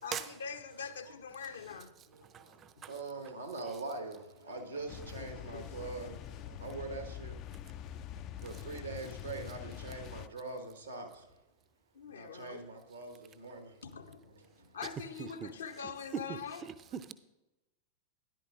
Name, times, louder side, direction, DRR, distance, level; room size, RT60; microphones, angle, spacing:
voice 1, 0.0-1.9 2.8-2.9 5.5-5.8 11.9-12.7 13.8-14.3 14.7-16.7, left 6 dB, 65° left, 0.7 m, -43 dB
voice 2, 2.3-2.9 15.2-15.5 16.3-16.4, right 9 dB, 30° right, 0.5 m, -40 dB
voice 3, 2.9-4.2 4.4-6.1 6.6-7.3 8.4-11.1 12.1-13.7, right 3 dB, 80° right, 1.3 m, -42 dB
sound 1, 4.9-10.3, left 10 dB, 40° left, 0.3 m, -45 dB
12.0 x 10.5 x 2.5 m
figure-of-eight pair, 90°, 0 cm